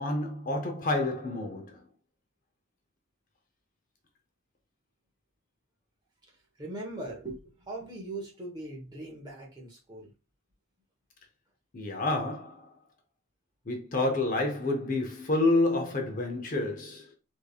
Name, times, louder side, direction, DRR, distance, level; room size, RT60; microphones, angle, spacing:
voice 1, 0.0-1.8 11.7-12.7 13.7-17.1, left 2 dB, 40° left, 0.7 m, -29 dB
voice 2, 6.6-10.1, right 2 dB, 20° right, 1.0 m, -40 dB
3.5 x 3.3 x 2.3 m
head